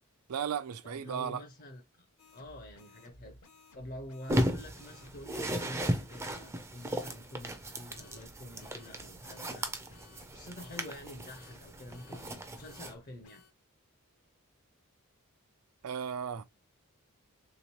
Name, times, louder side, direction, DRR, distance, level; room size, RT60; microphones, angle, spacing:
voice 1, 0.3-1.4 15.8-16.4, right 7 dB, 80° right, 0.4 m, -35 dB
voice 2, 0.8-2.1 2.3-3.4 3.7-9.7 10.3-13.4, left 1 dB, 45° left, 0.5 m, -47 dB
sound 1, 2.2-6.4 7.9-13.5, left 2 dB, 70° left, 0.8 m, -58 dB
sound 2, 4.3-12.9, equal, 10° right, 0.4 m, -36 dB
3.4 x 3.0 x 2.9 m
head